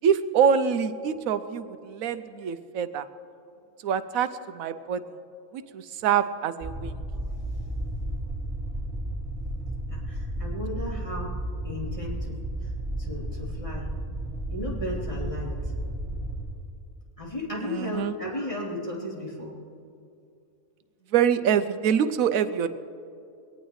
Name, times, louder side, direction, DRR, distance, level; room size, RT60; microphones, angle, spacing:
voice 1, 0.0-3.0 3.8-4.3 4.5-5.0 5.7-6.9 17.7-18.1 21.1-22.7, right 8 dB, 85° right, 12 dB, 1.1 m, -25 dB
sound 1, 6.6-16.4, right 1 dB, 5° right, 3.5 m, -33 dB
voice 2, 9.9-11.3 11.6-12.3 12.6-12.7 13.0-13.8 14.5-15.7 17.2-19.5, left 1 dB, 25° left, -6 dB, 3.5 m, -35 dB
22.5 x 18.0 x 3.2 m, 2.5 s
omnidirectional pair, 1.4 m